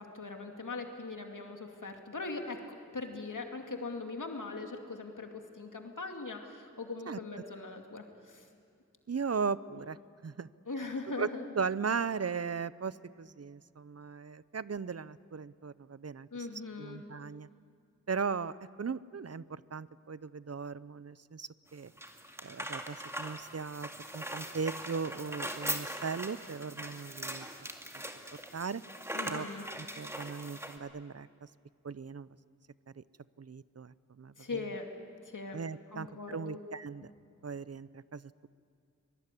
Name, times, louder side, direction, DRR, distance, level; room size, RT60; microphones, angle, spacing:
voice 1, 0.0-2.6 2.9-8.5 9.7-9.8 10.7-11.5 16.3-17.0 29.1-29.6 34.4-34.9 35.2-35.6 35.9-36.6, left 3 dB, 80° left, 3 dB, 2.5 m, -40 dB
voice 2, 9.1-10.0 10.2-10.5 11.2-11.3 11.6-16.3 16.8-17.5 18.1-21.9 22.4-27.5 28.5-28.8 29.3-29.5 29.8-31.5 31.8-32.3 33.0-33.1 33.4-34.6 35.5-37.1 37.4-38.5, right 5 dB, 55° right, 18 dB, 0.6 m, -37 dB
sound 1, 21.7-30.8, right 1 dB, 10° right, 2.3 m, -41 dB
24.0 x 20.5 x 9.9 m, 2.3 s
wide cardioid pair, 60°, 31 cm